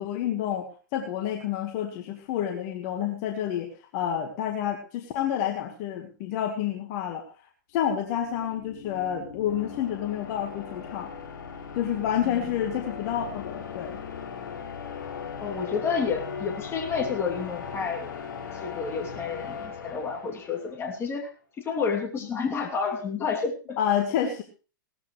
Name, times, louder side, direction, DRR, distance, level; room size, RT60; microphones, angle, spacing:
voice 1, 0.0-7.3 7.7-11.1 11.7-14.0 23.8-24.4, left 10 dB, 45° left, 4 dB, 1.6 m, -29 dB
sound 1, 7.9-20.8, left 6 dB, 60° left, 5.1 m, -38 dB
voice 2, 12.2-12.5 15.4-18.1 18.6-21.3 21.6-23.8, left 5 dB, 20° left, 0 dB, 2.9 m, -30 dB
17.5 x 13.0 x 3.2 m, 0.35 s
hypercardioid pair, 120°, 12 cm